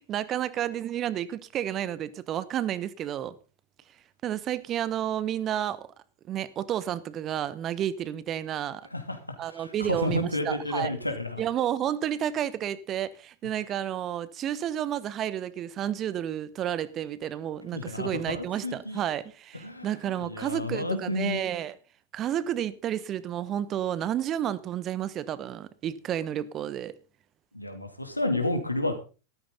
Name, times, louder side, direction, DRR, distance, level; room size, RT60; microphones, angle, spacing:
voice 1, 0.0-3.4 4.2-5.9 6.3-8.8 9.4-10.9 11.4-21.8 22.1-27.0, right 10 dB, 30° right, 1.0 m, -31 dB
voice 2, 9.4-11.4 17.7-19.0 19.6-19.9 20.2-21.4 27.5-29.0, left 2 dB, 85° left, 2.9 m, -31 dB
14.0 x 13.5 x 4.0 m
figure-of-eight pair, 90°, 0 cm